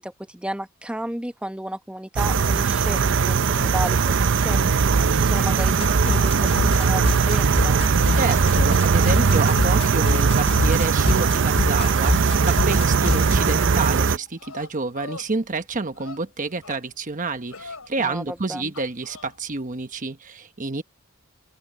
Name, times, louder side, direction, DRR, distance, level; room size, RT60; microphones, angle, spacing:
voice 1, 0.0-4.7 5.1-7.8 18.0-18.7, right 1 dB, 5° right, 1.2 m, -33 dB
sound 1, 2.2-14.2, right 5 dB, 60° right, 0.6 m, -19 dB
sound 2, 5.7-13.6, left 3 dB, 25° left, 0.4 m, -27 dB
voice 2, 8.2-20.8, right 3 dB, 40° right, 1.1 m, -29 dB
sound 3, 9.7-11.3 11.7-13.7 14.4-15.3 15.9-16.8 17.5-17.9 18.7-19.3, left 4 dB, 85° left, 7.2 m, -42 dB
open air
head